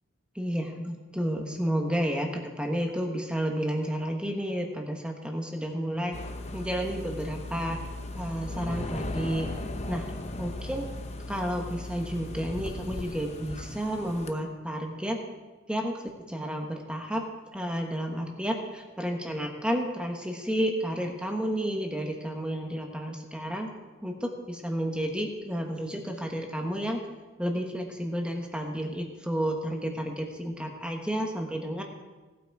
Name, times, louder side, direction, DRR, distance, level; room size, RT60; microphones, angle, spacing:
voice 1, 0.4-6.2 6.5-7.8 8.1-9.5 9.9-10.9 11.3-15.2 15.7-17.3 17.5-23.7 24.0-27.0 27.4-31.8, equal, 5° right, 2 dB, 1.3 m, -31 dB
sound 1, 6.1-14.3, left 1 dB, 35° left, 0.8 m, -37 dB
18.0 x 8.4 x 4.8 m, 1.3 s
head